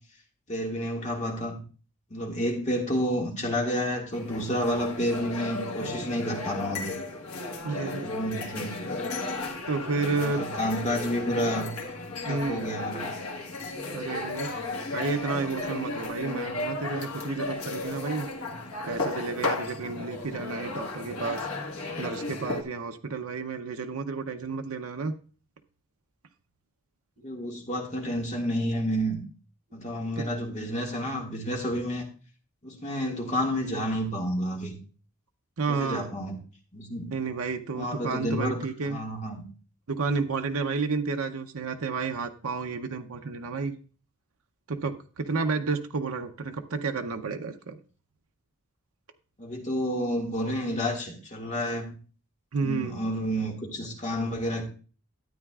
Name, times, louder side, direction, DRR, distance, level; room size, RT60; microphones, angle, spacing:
voice 1, 0.5-1.6 2.1-6.9 7.8-8.8 10.2-11.7 12.2-13.1 27.2-29.2 29.7-32.1 32.6-34.7 35.7-36.4 36.7-37.1 37.8-39.5 49.4-51.9 52.6-54.6, equal, 30° left, 0 dB, 1.9 m, -30 dB
sound 1, 4.1-22.6, left 3 dB, 75° left, 1.5 m, -34 dB
voice 2, 7.6-8.1 9.7-10.5 12.2-12.7 13.9-14.5 14.9-18.3 18.9-21.5 22.0-25.1 30.2-30.3 35.6-36.1 37.1-39.0 39.9-43.7 44.7-47.8 52.5-53.0, right 4 dB, 75° right, 5 dB, 0.7 m, -31 dB
13.0 x 8.9 x 2.4 m, 0.38 s
head